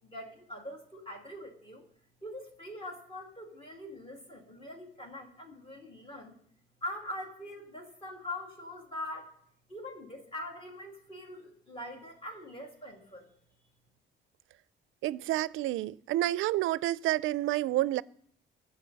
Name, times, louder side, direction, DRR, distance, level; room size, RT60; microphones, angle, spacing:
voice 1, 0.0-1.9 2.2-6.3 6.8-9.3 9.7-13.3, left 1 dB, 25° left, 2.6 m, -43 dB
voice 2, 15.0-18.0, right 15 dB, 85° right, 0.4 m, -29 dB
21.0 x 7.9 x 4.0 m
cardioid pair, 140°, 20 cm